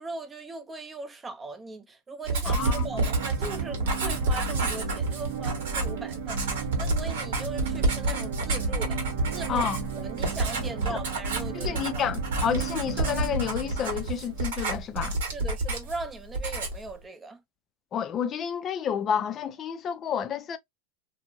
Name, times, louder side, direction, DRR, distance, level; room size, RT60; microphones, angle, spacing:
voice 1, 0.0-9.0 9.3-9.7 9.9-12.0 15.3-17.4, right 3 dB, 20° right, 0.6 m, -39 dB
Writing, 2.3-16.1 16.3-16.9, right 2 dB, 80° right, 1.4 m, -29 dB
voice 2, 2.4-3.0 9.5-9.8 10.9-11.0 11.5-15.2 17.9-20.6, left 8 dB, 35° left, 0.4 m, -30 dB
sound 1, 2.6-14.5, right 10 dB, 60° right, 0.8 m, -37 dB
2.7 x 2.5 x 2.6 m
hypercardioid pair, 100°, 0 cm